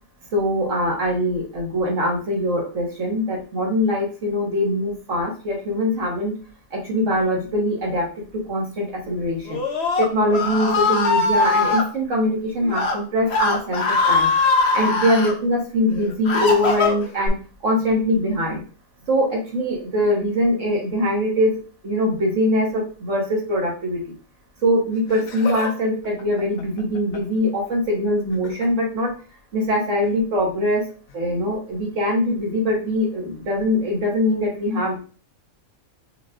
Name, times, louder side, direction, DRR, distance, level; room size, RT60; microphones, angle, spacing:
voice 1, 0.3-6.3 6.7-8.1 8.5-9.6 10.0-13.8 14.1-14.3 14.7-17.4 17.6-18.6 19.1-21.5 21.8-24.0 24.6-29.1 29.5-30.8 31.1-35.0, left 1 dB, 65° right, -1 dB, 1.7 m, -22 dB
Screaming, 9.5-11.8 12.6-13.0 13.3-15.3 15.9-17.3, left 3 dB, 55° left, 1.1 m, -21 dB
Laughter, 24.9-25.8 26.0-27.4 28.3-28.7 30.0-30.2 31.1-31.2, left 2 dB, 85° left, 1.2 m, -35 dB
5.4 x 2.5 x 3.7 m, 0.39 s
omnidirectional pair, 1.4 m